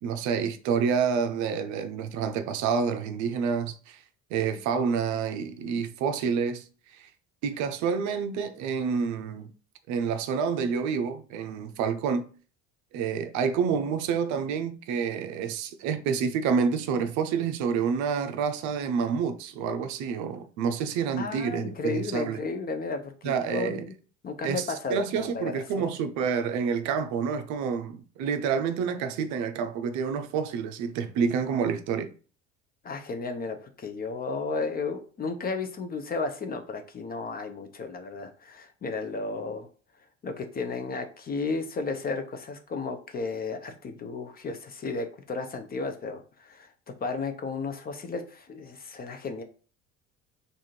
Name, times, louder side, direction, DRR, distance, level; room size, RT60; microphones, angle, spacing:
voice 1, 0.0-4.0 4.3-6.6 6.9-7.1 7.4-9.5 9.9-12.3 12.9-22.4 23.2-23.9 24.4-32.1, right 6 dB, 45° right, 0.6 m, -28 dB
voice 2, 21.2-23.9 24.2-25.9 32.8-39.7 40.2-49.4, left 4 dB, 25° left, 0.5 m, -33 dB
3.5 x 2.6 x 4.3 m
figure-of-eight pair, 60°, 41 cm